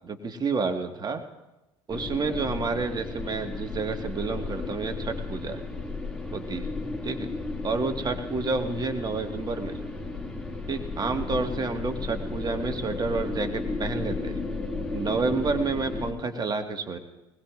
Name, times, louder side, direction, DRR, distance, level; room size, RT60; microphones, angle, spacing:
voice 1, 0.0-1.2 1.9-5.6 6.3-6.7 7.0-7.3 7.6-9.8 10.7-14.4 14.9-17.0, right 4 dB, 30° right, 6 dB, 1.7 m, -29 dB
sound 1, 1.9-16.1, left 3 dB, 5° left, 2.5 m, -34 dB
21.5 x 20.5 x 2.5 m, 1.0 s
figure-of-eight pair, 60°, 15 cm